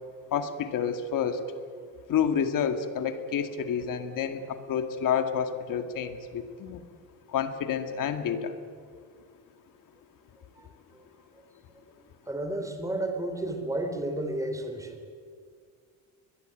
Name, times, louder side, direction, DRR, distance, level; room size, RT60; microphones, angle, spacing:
voice 1, 0.3-1.4 2.1-6.8 7.3-8.5, left 7 dB, 60° left, 8 dB, 2.1 m, -29 dB
voice 2, 12.3-15.0, right 1 dB, 10° right, 5 dB, 3.7 m, -32 dB
23.5 x 21.0 x 9.1 m, 2.1 s
cardioid pair, 130°, 37 cm